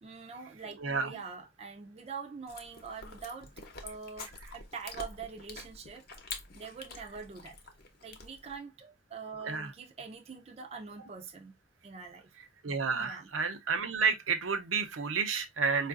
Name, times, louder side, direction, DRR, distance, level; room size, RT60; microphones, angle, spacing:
voice 1, 0.0-3.5 3.8-6.1 6.5-7.6 8.0-11.5 11.8-12.3 13.0-13.3, right 5 dB, 30° right, 0.4 m, -44 dB
voice 2, 0.8-1.2 9.4-9.7 12.6-15.9, right 5 dB, 85° right, 0.7 m, -30 dB
Chewing mastication, 2.5-8.6, left 4 dB, 50° left, 0.8 m, -47 dB
4.6 x 2.5 x 2.4 m
head